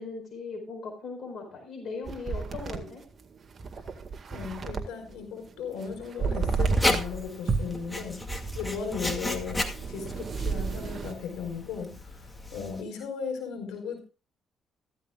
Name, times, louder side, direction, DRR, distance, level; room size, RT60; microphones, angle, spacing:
voice 1, 0.0-3.0, left 4 dB, 55° left, 4 dB, 4.6 m, -38 dB
sound 1, 2.1-5.2 5.5-7.1 7.5-11.1, right 4 dB, 45° right, 1.9 m, -32 dB
voice 2, 4.3-8.2 8.5-14.0, left 6 dB, 85° left, 2 dB, 4.5 m, -36 dB
Writing, 6.5-12.8, left 1 dB, 15° left, 2.2 m, -34 dB
15.5 x 13.0 x 2.4 m, 0.33 s
cardioid pair, 90°, 0 cm